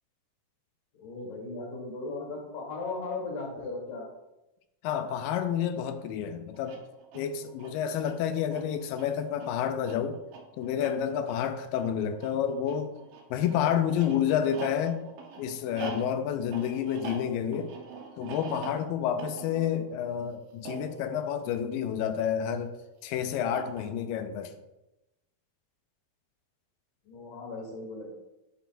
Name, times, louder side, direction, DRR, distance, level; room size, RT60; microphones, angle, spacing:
voice 1, 0.9-4.0 27.1-28.1, left 3 dB, 65° left, -3 dB, 3.8 m, -37 dB
voice 2, 4.8-6.8 7.1-10.2 10.6-12.9 13.3-15.0 15.4-17.7 18.2-22.7 23.0-24.5, left 9 dB, 80° left, 8 dB, 2.2 m, -29 dB
sound 1, 6.5-22.3 23.3-24.2, right 5 dB, 75° right, 2.6 m, -45 dB
9.0 x 6.9 x 2.6 m, 0.97 s
omnidirectional pair, 4.1 m